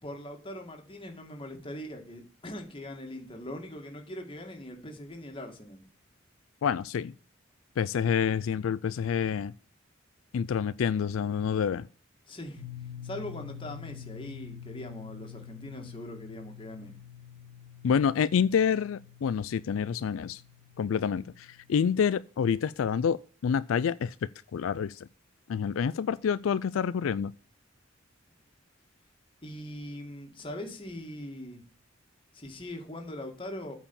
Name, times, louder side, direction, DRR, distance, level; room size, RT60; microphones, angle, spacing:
voice 1, 0.0-5.8 12.3-12.6 13.0-17.0 29.4-31.6 32.3-33.7, left 1 dB, 25° left, 2.1 m, -41 dB
voice 2, 6.6-7.1 7.8-9.5 10.3-11.9 17.8-20.4 20.8-24.1 24.5-25.1 25.5-27.3, left 7 dB, 85° left, 0.4 m, -28 dB
sound 1, 12.6-22.1, left 8 dB, 55° right, 2.2 m, -47 dB
8.7 x 4.8 x 7.0 m
head